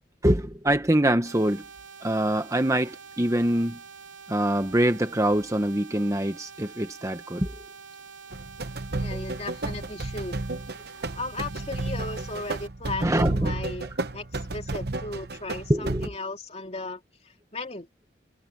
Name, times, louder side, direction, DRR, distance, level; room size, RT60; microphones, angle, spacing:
voice 1, 0.2-1.6 2.0-3.8 4.3-7.5 13.0-13.6 15.7-16.1, right 1 dB, 15° right, 1.0 m, -24 dB
sound 1, 1.3-12.7, right 5 dB, 85° right, 3.6 m, -46 dB
sound 2, 8.3-16.1, right 2 dB, 55° right, 1.1 m, -32 dB
voice 2, 9.0-10.4 11.1-13.9 14.1-17.9, left 2 dB, 35° left, 2.9 m, -36 dB
head